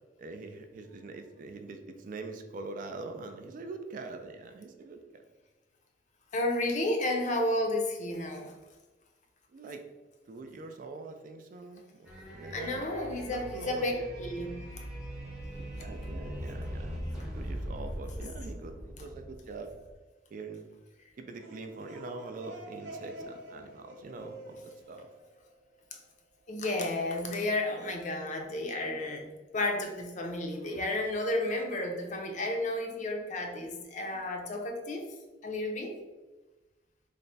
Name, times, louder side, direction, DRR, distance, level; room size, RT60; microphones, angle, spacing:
voice 1, 0.2-5.3 9.5-9.9 10.3-14.1 15.8-17.0 17.3-19.8 20.3-20.7 21.2-24.6 24.9-25.1, right 3 dB, 45° right, 6 dB, 0.3 m, -43 dB
voice 2, 6.3-8.5 12.5-13.9 14.2-14.5 18.2-18.3 26.5-29.3 29.5-35.1 35.4-36.0, left 1 dB, 40° left, 3 dB, 0.5 m, -32 dB
sound 1, 12.0-19.9, equal, 5° right, 0.7 m, -40 dB
sound 2, 21.2-25.9, right 1 dB, 75° right, 0.9 m, -48 dB
3.3 x 2.1 x 3.9 m, 1.2 s
head